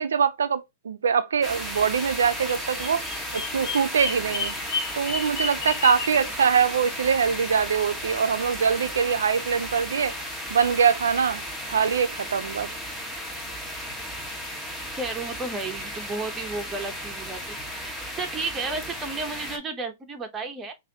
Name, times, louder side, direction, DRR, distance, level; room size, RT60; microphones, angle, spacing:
voice 1, 0.0-3.0 3.3-4.5 5.0-10.1 10.5-11.4 11.7-12.7, right 6 dB, 90° right, 0.4 m, -23 dB
sound 1, 1.4-19.6, equal, 5° left, 1.2 m, -34 dB
Bird vocalization bird call bird song, 2.6-6.3, left 5 dB, 35° left, 1.3 m, -32 dB
voice 2, 15.0-17.6 17.8-20.7, right 3 dB, 15° right, 1.0 m, -33 dB
5.5 x 2.6 x 2.8 m
hypercardioid pair, 130°, 0 cm